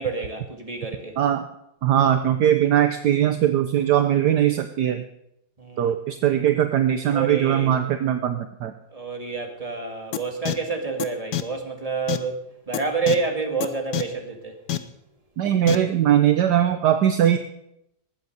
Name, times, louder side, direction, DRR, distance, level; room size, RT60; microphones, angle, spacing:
voice 1, 0.0-1.2 5.6-5.9 7.1-7.8 8.9-14.6, right 4 dB, 20° right, 3 dB, 2.1 m, -28 dB
voice 2, 1.8-5.0 5.8-8.7 15.4-17.4, right 10 dB, 70° right, 8 dB, 1.3 m, -20 dB
sound 1, 10.1-10.2 10.5-10.6 11.0-11.1 11.3-11.4 12.1-12.2 12.7-12.8 13.1-13.2 13.6-13.7 13.9-14.0 14.7-14.8 15.7-15.8, left 11 dB, 70° left, 1.4 m, -25 dB
19.5 x 8.1 x 6.6 m, 0.80 s
omnidirectional pair, 2.0 m